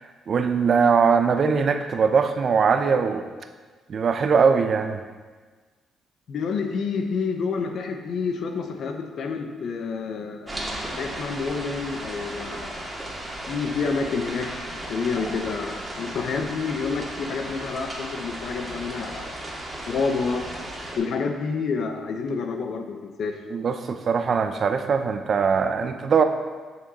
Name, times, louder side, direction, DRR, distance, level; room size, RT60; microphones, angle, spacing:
voice 1, 0.3-3.2 3.9-5.0 23.5-26.2, right 5 dB, 50° right, 8 dB, 0.6 m, -21 dB
voice 2, 6.3-10.5 11.0-12.9 13.5-19.5 19.9-20.4 21.0-23.4, left 5 dB, 65° left, 5 dB, 0.9 m, -29 dB
sound 1, 10.5-21.0, right 1 dB, 15° right, 2.0 m, -35 dB
8.7 x 6.2 x 4.1 m, 1.4 s
cardioid pair, 90°, 0 cm